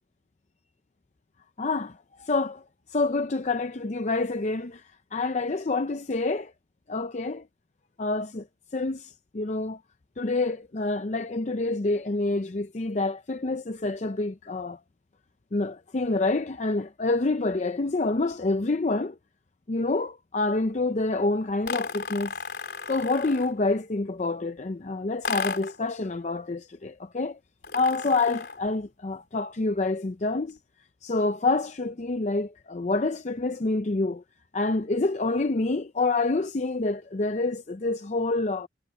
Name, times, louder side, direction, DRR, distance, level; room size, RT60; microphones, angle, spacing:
voice 1, 1.6-2.6 2.9-4.8 5.1-6.5 6.9-7.4 8.0-8.5 8.7-9.8 10.2-14.8 15.5-19.1 19.7-22.3 22.9-27.4 27.7-30.6 31.0-34.2 34.5-38.7, left 3 dB, 40° left, 0.6 m, -27 dB
sound 1, 21.6-23.6 25.2-25.8 27.6-28.7, left 4 dB, 65° left, 4.1 m, -33 dB
head